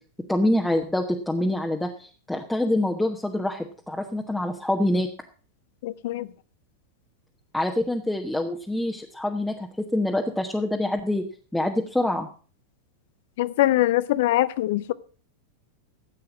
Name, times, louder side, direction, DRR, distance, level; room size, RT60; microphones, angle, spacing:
voice 1, 0.3-5.1 7.5-11.2 11.5-12.3, left 1 dB, 5° left, 1.2 m, -25 dB
voice 2, 5.8-6.3 13.4-14.9, left 15 dB, 55° left, 0.6 m, -23 dB
14.0 x 8.4 x 5.9 m
figure-of-eight pair, 90°, 0 cm